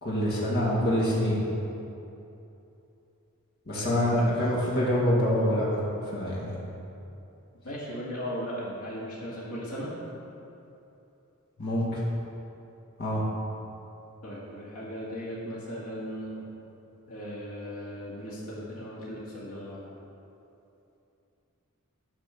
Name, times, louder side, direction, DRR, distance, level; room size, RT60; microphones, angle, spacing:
voice 1, 0.0-1.4 3.7-6.6 11.6-12.0 13.0-13.2, equal, 45° left, -7 dB, 1.9 m, -26 dB
voice 2, 3.7-4.3 7.6-9.9 14.2-16.4 17.1-19.9, equal, 80° left, -6 dB, 2.0 m, -37 dB
9.5 x 4.5 x 7.0 m, 2.8 s
head